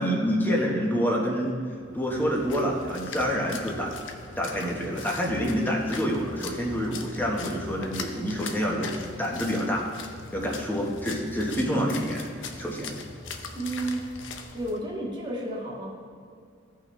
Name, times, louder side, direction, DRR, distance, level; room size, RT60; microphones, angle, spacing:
voice 1, 0.0-1.6 1.9-3.9 4.4-9.8 10.3-12.2 12.6-13.0, equal, 10° left, -2 dB, 1.2 m, -27 dB
sound 1, 1.8-14.9, left 1 dB, 55° right, 1.5 m, -44 dB
Splash splatter, 2.0-14.8, left 5 dB, 85° left, 0.8 m, -42 dB
voice 2, 13.5-14.1 14.5-15.9, right 1 dB, 25° right, -3 dB, 1.7 m, -31 dB
15.5 x 5.6 x 3.2 m, 2.3 s
head